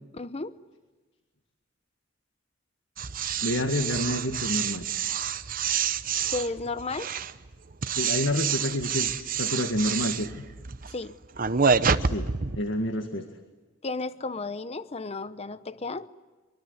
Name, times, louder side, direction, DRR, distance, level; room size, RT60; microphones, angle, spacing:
voice 1, 0.1-0.6 6.3-7.1 10.9-11.2 13.8-16.1, left 3 dB, 30° left, 0.8 m, -33 dB
sound 1, 3.0-12.6, right 6 dB, 45° right, 0.9 m, -28 dB
voice 2, 3.4-4.9 7.9-10.3 12.0-12.3 12.6-13.2, left 1 dB, 70° left, 1.9 m, -28 dB
24.0 x 24.0 x 9.7 m
head